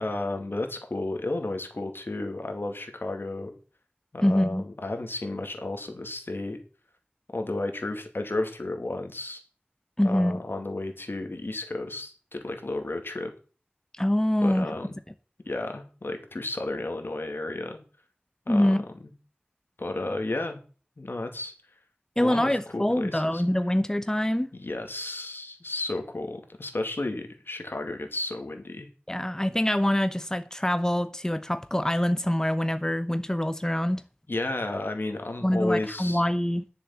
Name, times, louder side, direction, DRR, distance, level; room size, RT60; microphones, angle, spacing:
voice 1, 0.0-3.5 4.1-6.6 7.3-9.4 10.0-13.3 14.4-15.0 15.5-17.8 18.5-18.8 19.0-19.1 19.8-20.6 21.0-21.5 22.2-23.4 24.6-28.9 34.3-36.2, left 2 dB, 85° left, 2.3 m, -32 dB
voice 2, 4.2-4.6 10.0-10.4 14.0-14.7 18.5-18.8 22.2-24.5 29.1-34.0 35.4-36.6, left 1 dB, 15° left, 0.9 m, -25 dB
11.0 x 7.0 x 7.1 m
wide cardioid pair, 45°, 4 cm